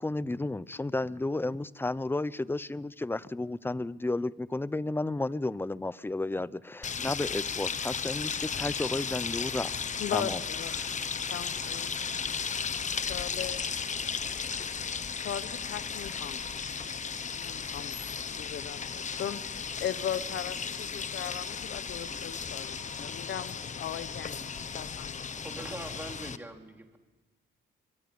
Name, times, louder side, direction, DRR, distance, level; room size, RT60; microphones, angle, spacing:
voice 1, 0.0-9.8 10.1-10.4 10.8-10.9, left 2 dB, 10° left, 0.8 m, -32 dB
sound 1, 6.8-26.4, left 6 dB, 35° left, 1.2 m, -35 dB
voice 2, 10.0-10.9 11.3-11.9 13.0-13.9 15.2-16.4 17.3-24.5 24.7-25.4, left 9 dB, 65° left, 1.2 m, -38 dB
voice 3, 25.3-27.0, right 1 dB, 10° right, 4.1 m, -43 dB
24.0 x 22.5 x 8.8 m
cardioid pair, 90°, 20 cm